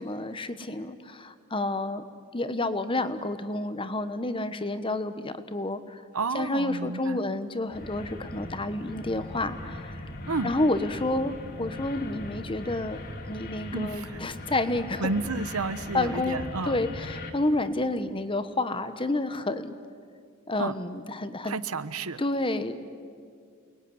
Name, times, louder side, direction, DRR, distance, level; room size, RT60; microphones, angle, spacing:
voice 1, 0.0-2.0 2.3-6.0 6.3-10.0 10.4-13.0 13.3-15.1 15.9-16.4 16.7-19.7 20.5-21.6 22.2-22.7, left 2 dB, 25° left, 11 dB, 1.2 m, -29 dB
voice 2, 6.1-7.2 10.3-10.5 13.7-14.2 15.0-16.8 20.6-20.8 21.4-22.2, right 3 dB, 85° right, 13 dB, 1.0 m, -31 dB
sound 1, 7.7-17.3, left 1 dB, 45° left, 2.6 m, -40 dB
29.0 x 21.0 x 9.6 m, 2.1 s
head